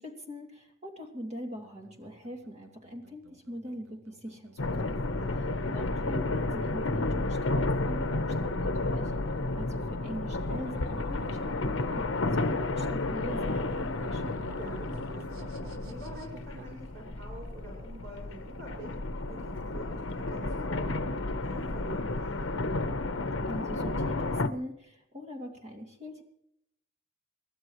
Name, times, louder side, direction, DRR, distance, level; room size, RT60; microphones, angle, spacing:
voice 1, 0.0-5.2 5.6-9.1 9.6-14.2 23.4-26.2, equal, 30° right, 2 dB, 2.6 m, -42 dB
sound 1, 1.5-16.8, right 2 dB, 80° right, 1.0 m, -50 dB
sound 2, 4.6-24.5, left 2 dB, 70° left, 1.0 m, -32 dB
voice 2, 5.1-5.5 8.7-9.1 14.6-22.3, right 1 dB, 60° right, -4 dB, 5.8 m, -47 dB
28.5 x 12.5 x 3.1 m, 0.76 s
head